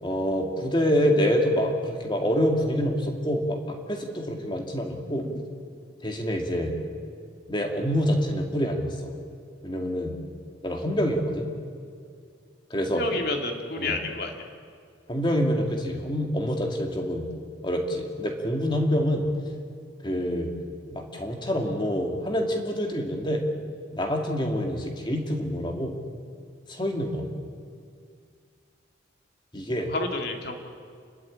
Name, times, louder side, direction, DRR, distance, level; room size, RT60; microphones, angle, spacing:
voice 1, 0.0-5.4 6.0-6.7 7.5-9.1 9.6-10.1 10.6-11.5 12.7-13.0 13.8-14.0 15.1-17.3 17.6-19.3 20.0-20.5 20.9-23.4 23.9-26.0 26.7-27.3 29.5-29.9, equal, 25° left, 2 dB, 2.3 m, -26 dB
voice 2, 12.8-14.3 29.9-30.5, left 2 dB, 55° left, 3 dB, 2.4 m, -30 dB
29.5 x 12.5 x 8.7 m, 2.2 s
head